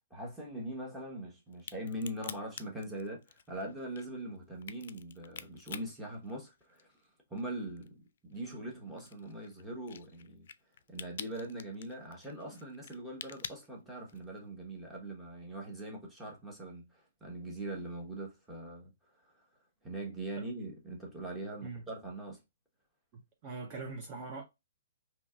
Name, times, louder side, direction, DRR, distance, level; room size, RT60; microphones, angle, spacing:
voice 1, 0.1-7.0 7.3-10.5 10.9-18.9 19.2-19.4 19.8-22.4, right 1 dB, 5° right, 1.2 m, -42 dB
Crack, 1.5-7.0 7.4-14.4, left 8 dB, 65° left, 0.4 m, -47 dB
voice 2, 23.1-24.4, right 3 dB, 30° right, 0.8 m, -42 dB
3.8 x 2.9 x 2.3 m
hypercardioid pair, 145°, 0 cm